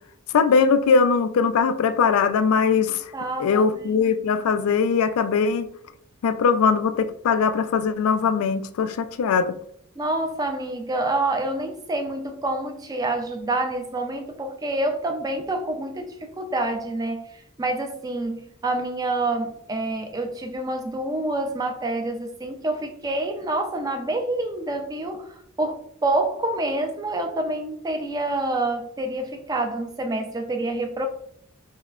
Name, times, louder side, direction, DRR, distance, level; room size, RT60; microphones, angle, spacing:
voice 1, 0.3-3.1 3.4-5.7 6.2-9.6, left 5 dB, 75° left, 0.3 m, -21 dB
voice 2, 3.1-4.0 10.0-17.3 17.6-31.1, right 2 dB, 15° right, 0.4 m, -27 dB
5.5 x 2.1 x 2.4 m
head